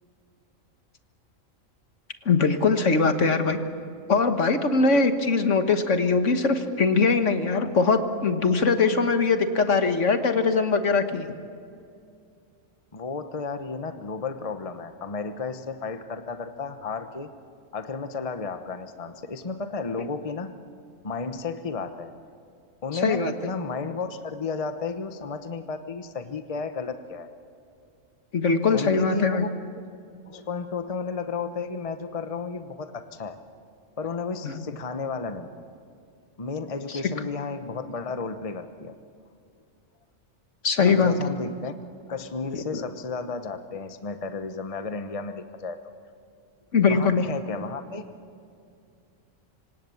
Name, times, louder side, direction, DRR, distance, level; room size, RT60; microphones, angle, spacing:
voice 1, 2.2-3.6 4.1-11.3 23.0-23.3 28.3-29.5 34.4-34.6 40.6-41.1 42.7-42.8 46.7-47.2, left 4 dB, 65° left, 7 dB, 1.7 m, -21 dB
voice 2, 12.9-17.3 17.7-20.5 21.0-22.1 22.8-27.3 28.7-29.5 29.8-29.9 30.3-33.4 34.0-35.6 36.4-39.0 40.9-41.7 42.1-45.8 46.8-48.0, left 4 dB, 30° left, 9 dB, 1.0 m, -33 dB
26.0 x 26.0 x 7.1 m, 2.4 s
omnidirectional pair, 1.4 m